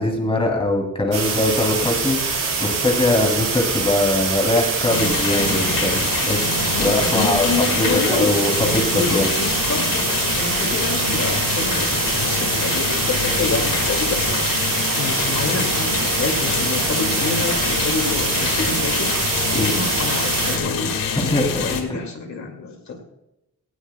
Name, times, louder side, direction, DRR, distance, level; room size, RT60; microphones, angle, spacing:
voice 1, 0.0-9.3 19.5-19.7 21.1-21.6 21.9-22.0, left 2 dB, 15° left, 1 dB, 2.7 m, -22 dB
sound 1, 1.1-20.6, right 4 dB, 85° right, 4.9 m, -24 dB
sound 2, 4.9-21.8, left 5 dB, 80° left, 1.9 m, -25 dB
voice 2, 6.7-8.4 8.9-19.2 19.5-21.1 21.5-23.0, left 4 dB, 60° left, 3 dB, 2.2 m, -28 dB
18.5 x 18.0 x 2.3 m, 0.88 s
wide cardioid pair, 160°, 33 cm